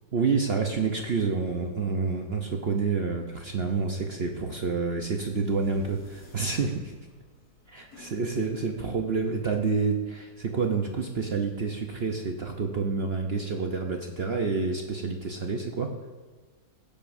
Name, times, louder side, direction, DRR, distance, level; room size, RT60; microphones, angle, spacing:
voice 1, 0.1-6.9 8.0-16.0, right 4 dB, 55° right, 2 dB, 0.7 m, -28 dB
sound 1, 5.1-10.7, left 2 dB, 55° left, 2.9 m, -56 dB
16.5 x 9.1 x 2.6 m, 1.4 s
omnidirectional pair, 2.0 m